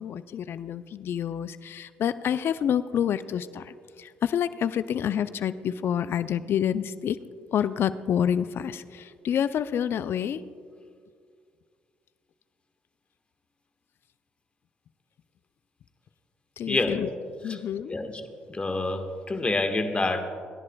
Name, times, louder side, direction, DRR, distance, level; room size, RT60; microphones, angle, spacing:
voice 1, 0.0-7.2 7.5-10.4 16.6-17.1 17.4-17.9, left 9 dB, 55° left, 14 dB, 0.5 m, -28 dB
voice 2, 16.7-17.2 17.4-17.6 17.9-18.2 18.5-20.2, left 2 dB, 25° left, 6 dB, 1.4 m, -27 dB
28.5 x 10.5 x 2.3 m, 2.1 s
hypercardioid pair, 50°, 5 cm